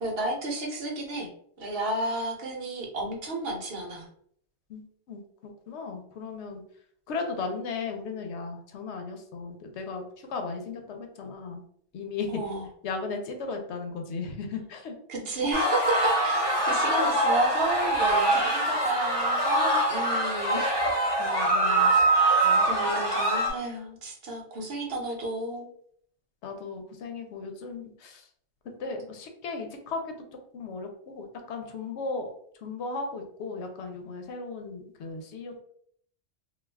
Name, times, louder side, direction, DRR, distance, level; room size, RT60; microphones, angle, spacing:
voice 1, 0.0-1.3 1.6-4.1 12.3-12.7 15.1-20.7 21.9-22.0 22.6-25.7, right 1 dB, 60° right, -1 dB, 0.9 m, -32 dB
voice 2, 5.1-6.6 7.1-10.0 10.3-11.6 11.9-12.3 12.8-15.0 21.2-22.0 22.4-22.9 26.4-28.2 28.8-30.1 30.5-32.3 32.6-35.6, left 4 dB, 75° left, 4 dB, 0.9 m, -36 dB
sound 1, 15.5-23.5, right 2 dB, 25° left, 0.7 m, -24 dB
2.3 x 2.3 x 3.2 m, 0.63 s
omnidirectional pair, 1.2 m